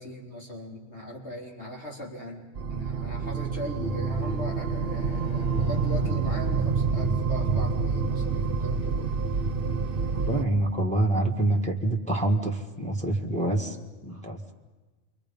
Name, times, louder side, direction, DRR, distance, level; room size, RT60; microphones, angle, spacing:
voice 1, 0.0-9.2 14.1-14.2, equal, 50° left, -2 dB, 4.2 m, -39 dB
sound 1, 2.6-10.4, right 5 dB, 45° right, 1.0 m, -27 dB
sound 2, 3.6-9.1, equal, 35° left, 1.3 m, -41 dB
voice 2, 10.3-13.8 14.0-14.5, right 2 dB, 5° left, 2 dB, 1.5 m, -26 dB
28.5 x 23.5 x 5.4 m, 1.3 s
omnidirectional pair, 1.5 m